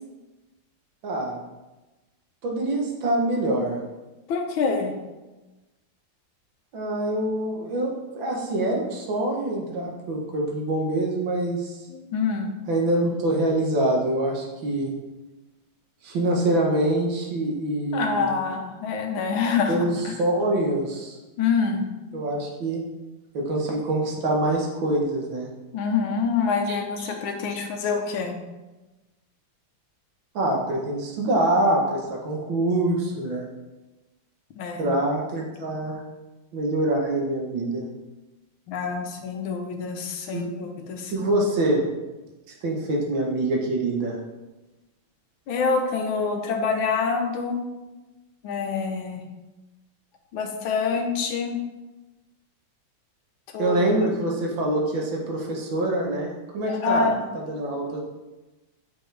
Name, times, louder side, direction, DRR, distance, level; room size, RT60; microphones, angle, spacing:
voice 1, 1.0-1.4 2.4-3.8 6.7-11.8 12.7-14.9 16.0-18.4 19.7-21.2 22.1-22.8 23.3-25.5 26.7-27.1 30.4-33.4 34.8-36.0 36.5-37.9 40.3-40.5 41.1-41.8 42.6-44.2 53.6-57.1 57.5-58.0, right 1 dB, 75° right, 0 dB, 1.9 m, -25 dB
voice 2, 4.3-5.0 11.9-12.5 17.9-20.1 21.4-21.9 25.7-28.4 34.6-34.9 38.7-41.1 45.5-47.7 48.4-49.2 50.3-51.6 53.5-53.8 56.7-57.2, left 5 dB, 80° left, 4 dB, 1.6 m, -26 dB
7.5 x 5.4 x 3.4 m, 1.1 s
omnidirectional pair, 2.2 m